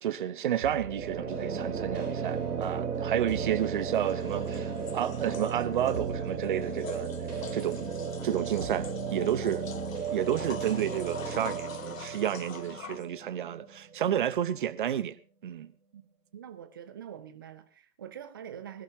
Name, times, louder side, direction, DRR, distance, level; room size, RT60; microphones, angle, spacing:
voice 1, 0.0-7.1 7.5-7.9 8.2-9.7 10.1-15.2 15.4-15.7, right 10 dB, 30° right, 1.0 m, -31 dB
sound 1, 0.6-14.3, right 6 dB, 70° right, 2.9 m, -35 dB
sound 2, 2.0-2.1 3.8-13.1, left 6 dB, 55° left, 1.3 m, -45 dB
voice 2, 16.3-18.8, right 9 dB, 15° right, 0.6 m, -44 dB
24.5 x 12.5 x 2.7 m
figure-of-eight pair, 130°, 48 cm